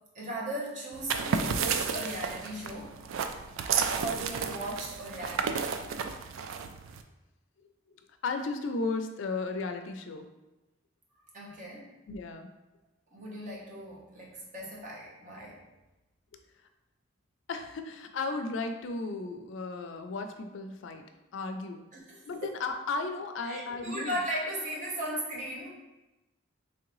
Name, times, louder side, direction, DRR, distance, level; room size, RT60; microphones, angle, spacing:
voice 1, 0.1-3.0 4.0-5.8 11.3-11.9 13.1-15.6 21.9-22.5 23.4-25.7, right 1 dB, 40° right, -4 dB, 0.9 m, -37 dB
sound 1, 0.9-7.0, right 6 dB, 85° right, 0.3 m, -32 dB
voice 2, 8.2-10.3 12.1-12.5 17.5-21.0 21.3-21.9 22.3-24.1, left 3 dB, 75° left, 6 dB, 0.4 m, -34 dB
3.6 x 3.2 x 3.0 m, 1.0 s
head